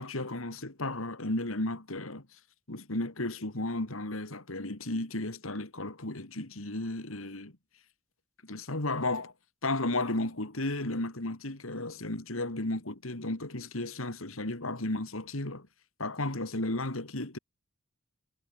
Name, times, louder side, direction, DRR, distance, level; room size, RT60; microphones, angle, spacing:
voice 1, 0.0-2.3 2.7-7.5 8.4-9.3 9.6-15.7 16.0-17.4, left 2 dB, 75° left, 3.1 m, -34 dB
head